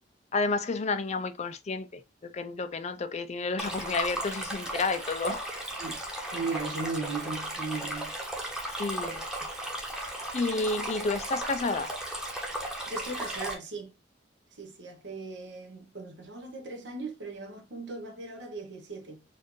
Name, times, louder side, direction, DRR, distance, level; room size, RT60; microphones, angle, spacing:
voice 1, 0.3-5.5 8.8-9.3 10.3-11.9, left 3 dB, 35° left, 0.4 m, -31 dB
Stream, 3.6-13.5, right 1 dB, 5° right, 0.9 m, -35 dB
voice 2, 5.8-8.2 9.4-9.5 12.9-13.9 14.5-19.2, right 3 dB, 70° right, 1.0 m, -38 dB
4.3 x 2.6 x 3.0 m
head